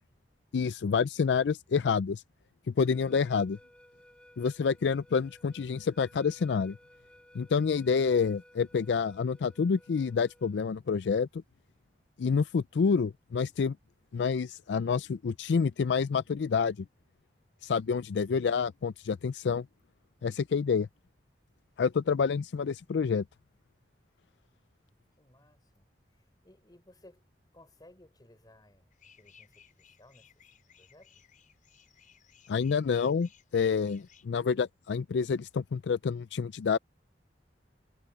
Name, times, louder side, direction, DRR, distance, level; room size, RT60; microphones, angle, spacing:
voice 1, 0.5-2.2 2.8-3.6 4.4-6.8 7.3-11.3 12.2-13.8 14.1-16.8 17.6-19.7 20.2-20.9 21.8-23.2 32.5-36.8, left 5 dB, 75° left, 0.4 m, -28 dB
sound 1, 2.8-10.6, equal, 5° left, 5.3 m, -58 dB
voice 2, 25.2-25.9 26.1-27.3 27.5-30.4 30.8-31.2, left 1 dB, 25° left, 4.4 m, -59 dB
sound 2, 28.9-34.3, left 8 dB, 50° left, 6.7 m, -61 dB
head